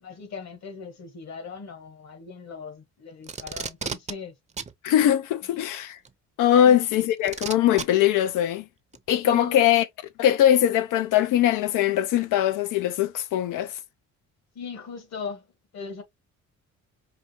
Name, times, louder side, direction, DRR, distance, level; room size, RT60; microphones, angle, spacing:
voice 1, 0.0-4.3 6.6-6.8 9.2-9.6 14.5-15.4 15.7-16.0, left 5 dB, 60° left, 1.5 m, -38 dB
Packing tape duct tape, 3.2-4.1 4.6-4.7 6.0-6.1 7.3-7.8 8.9-9.0, right 5 dB, 25° right, 0.6 m, -32 dB
voice 2, 4.8-6.0 6.4-8.6 9.1-9.8 10.2-13.7, left 11 dB, 90° left, 0.7 m, -21 dB
4.9 x 2.5 x 2.8 m
cardioid pair, 90°, 30 cm